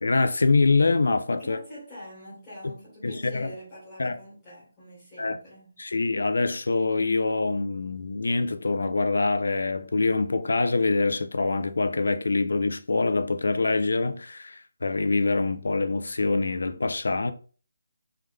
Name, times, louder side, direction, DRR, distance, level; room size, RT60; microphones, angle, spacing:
voice 1, 0.0-1.6 3.0-3.5 4.0-4.2 5.2-5.4 5.8-17.3, left 3 dB, 75° left, 0.5 m, -25 dB
voice 2, 1.3-5.8, equal, 10° left, 2.2 m, -45 dB
3.7 x 3.3 x 3.3 m
hypercardioid pair, 175°, 0 cm